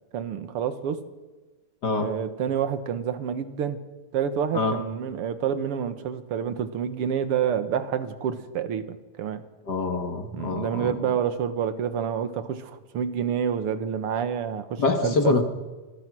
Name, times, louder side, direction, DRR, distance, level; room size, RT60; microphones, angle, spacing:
voice 1, 0.1-1.0 2.0-3.8 4.1-9.4 10.3-15.4, right 8 dB, 60° right, 11 dB, 1.6 m, -28 dB
voice 2, 9.7-10.9 14.8-15.4, left 4 dB, 40° left, 6 dB, 1.6 m, -25 dB
27.0 x 21.5 x 6.2 m, 1.2 s
omnidirectional pair, 4.0 m